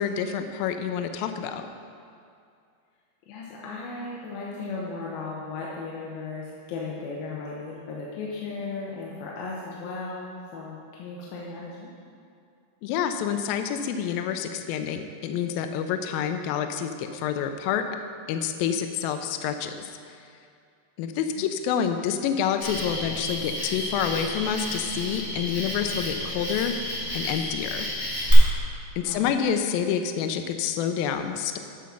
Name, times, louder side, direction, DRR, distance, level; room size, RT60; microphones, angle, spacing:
voice 1, 0.0-1.7 12.8-17.9 18.3-19.9 21.0-26.8 27.1-27.9 29.0-31.6, left 8 dB, 90° left, 7 dB, 2.0 m, -28 dB
voice 2, 3.3-11.9 21.1-21.4 29.0-29.3, left 3 dB, 75° left, -4 dB, 2.5 m, -36 dB
Cricket, 22.6-28.3, left 1 dB, 10° left, 1.7 m, -32 dB
9.2 x 6.3 x 5.8 m, 2.4 s
omnidirectional pair, 4.8 m